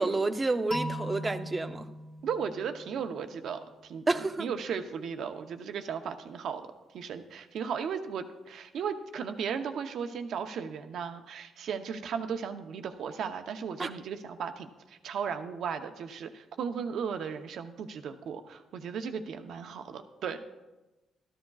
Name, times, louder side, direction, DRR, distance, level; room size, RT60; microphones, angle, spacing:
voice 1, 0.0-1.8 4.1-4.5 13.8-13.9, right 3 dB, 25° right, 9 dB, 0.7 m, -29 dB
sound 1, 0.7-3.6, equal, 40° left, 2.1 m, -39 dB
voice 2, 2.2-4.0 4.4-6.7 6.9-20.5, right 7 dB, 70° right, 7 dB, 0.8 m, -36 dB
13.0 x 12.5 x 2.4 m, 1.1 s
cardioid pair, 90°, 0 cm